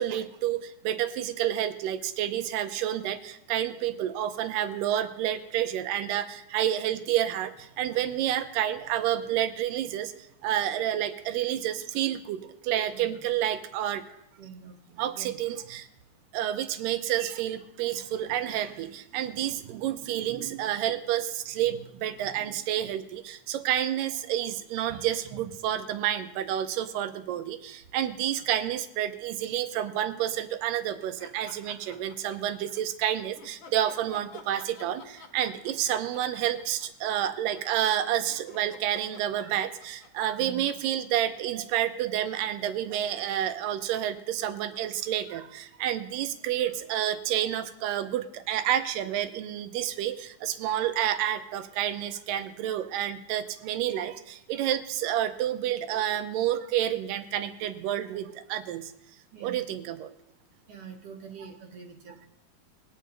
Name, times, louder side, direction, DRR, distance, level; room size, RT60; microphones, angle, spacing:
voice 1, 0.0-10.1 10.4-14.1 15.0-15.9 16.3-58.9 59.4-60.1, right 11 dB, 90° right, 9 dB, 2.3 m, -29 dB
voice 2, 14.4-15.3 24.9-25.0 25.3-25.4 28.3-28.4 40.3-40.6 59.3-59.7 60.7-62.3, right 6 dB, 60° right, 2 dB, 1.8 m, -45 dB
sound 1, 31.2-32.8 33.3-41.6, left 5 dB, 60° left, 1.5 m, -50 dB
21.5 x 10.0 x 2.6 m, 0.84 s
omnidirectional pair, 3.8 m